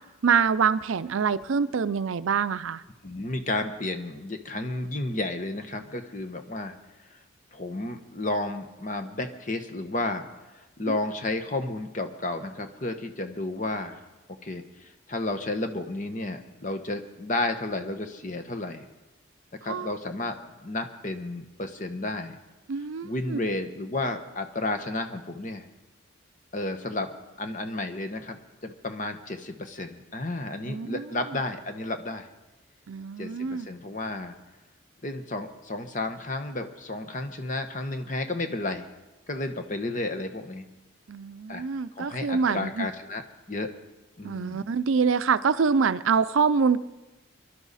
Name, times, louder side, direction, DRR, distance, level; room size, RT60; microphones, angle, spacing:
voice 1, 0.2-2.8 10.9-11.0 19.7-19.9 22.7-23.4 30.7-31.1 32.9-33.7 41.1-42.9 44.2-46.9, right 5 dB, 80° right, 15 dB, 0.5 m, -25 dB
voice 2, 3.0-6.8 7.1-7.2 7.5-10.3 10.5-14.0 14.4-18.9 19.6-22.4 23.0-25.7 26.5-27.1 27.4-32.3 33.2-34.3 35.0-38.9 39.3-40.6 41.5-41.6 41.9-43.2 43.5-43.7 44.2-44.6, left 2 dB, 40° left, 7 dB, 1.1 m, -32 dB
24.0 x 11.5 x 4.2 m, 1.1 s
head